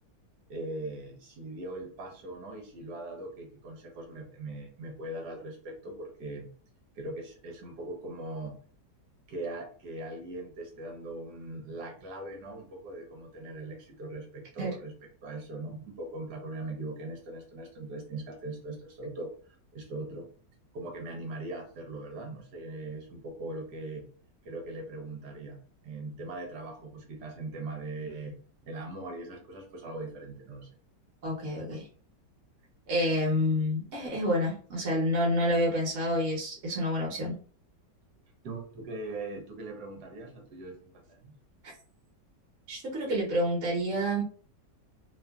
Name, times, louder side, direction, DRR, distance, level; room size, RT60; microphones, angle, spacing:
voice 1, 0.5-6.5 7.0-8.6 9.3-14.9 15.2-19.3 19.7-20.3 20.7-24.1 24.4-25.6 25.8-28.4 28.6-30.7 38.4-41.4, right 2 dB, 75° right, 2 dB, 1.2 m, -40 dB
voice 2, 31.2-31.9 32.9-37.3 42.7-44.2, equal, 50° right, -3 dB, 1.1 m, -28 dB
2.9 x 2.4 x 2.2 m, 0.43 s
omnidirectional pair, 1.8 m